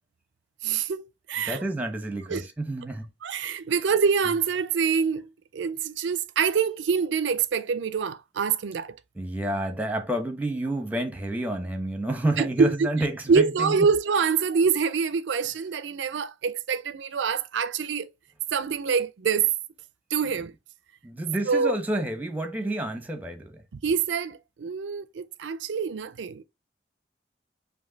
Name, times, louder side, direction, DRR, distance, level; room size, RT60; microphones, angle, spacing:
voice 1, 0.6-1.6 2.3-2.4 3.2-9.0 12.4-12.9 13.3-18.1 18.5-19.5 20.1-20.5 21.5-21.7 23.7-26.4, right 6 dB, 80° right, 0.4 m, -25 dB
voice 2, 1.5-3.1 9.1-13.9 21.0-23.6, right 1 dB, 10° right, 0.9 m, -29 dB
5.1 x 2.7 x 3.9 m
head